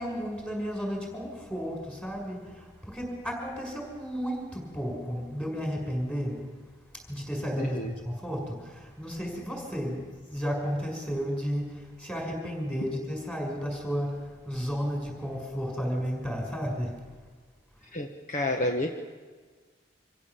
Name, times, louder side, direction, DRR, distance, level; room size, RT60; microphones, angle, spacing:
voice 1, 0.0-6.4 7.1-17.0, equal, 10° left, 1 dB, 5.9 m, -33 dB
voice 2, 7.6-7.9 17.9-18.9, left 1 dB, 45° left, 3 dB, 1.4 m, -30 dB
26.0 x 16.0 x 7.4 m, 1.5 s
head